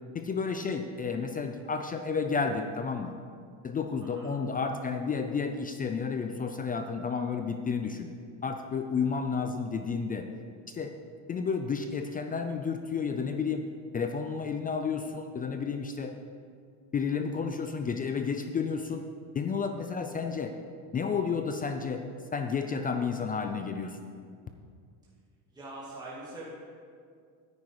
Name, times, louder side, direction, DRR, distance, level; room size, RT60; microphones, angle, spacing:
voice 1, 0.1-3.1 3.6-8.1 8.4-10.3 10.7-10.9 11.3-13.6 13.9-16.2 16.9-19.0 19.3-20.5 20.9-22.0 22.3-24.0, left 5 dB, 20° left, 7 dB, 0.4 m, -31 dB
voice 2, 25.5-26.4, right 2 dB, 10° right, -8 dB, 2.4 m, -44 dB
9.6 x 9.5 x 4.7 m, 2.2 s
cardioid pair, 135°, 40 cm